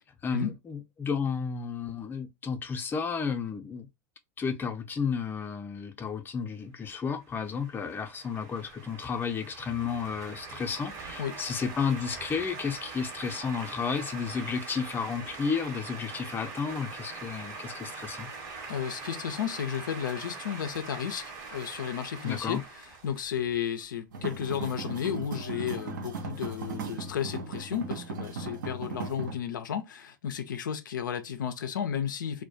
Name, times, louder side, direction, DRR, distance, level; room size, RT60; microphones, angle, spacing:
voice 1, 0.2-3.9 4.4-18.3 22.2-22.6, left 6 dB, 20° left, 0.5 m, -32 dB
sound 1, 7.2-23.8, right 4 dB, 60° right, 1.1 m, -43 dB
voice 2, 18.7-32.4, left 8 dB, 80° left, 0.4 m, -33 dB
sound 2, 24.1-29.3, right 4 dB, 80° right, 0.5 m, -37 dB
2.2 x 2.1 x 2.6 m
hypercardioid pair, 90°, 10 cm